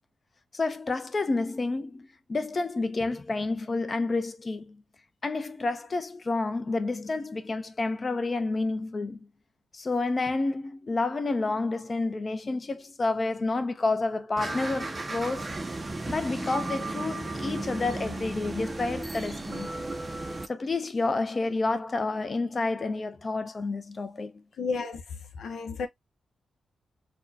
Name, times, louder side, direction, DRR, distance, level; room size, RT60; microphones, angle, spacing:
voice 1, 0.5-4.8 5.2-9.2 9.7-15.6 16.1-19.7 20.5-24.4, left 3 dB, 25° left, 0.6 m, -29 dB
sound 1, 14.4-20.5, right 2 dB, 20° right, 0.5 m, -34 dB
voice 2, 24.6-25.9, left 4 dB, 70° left, 0.7 m, -33 dB
4.3 x 2.2 x 2.7 m
wide cardioid pair, 170°, 0 cm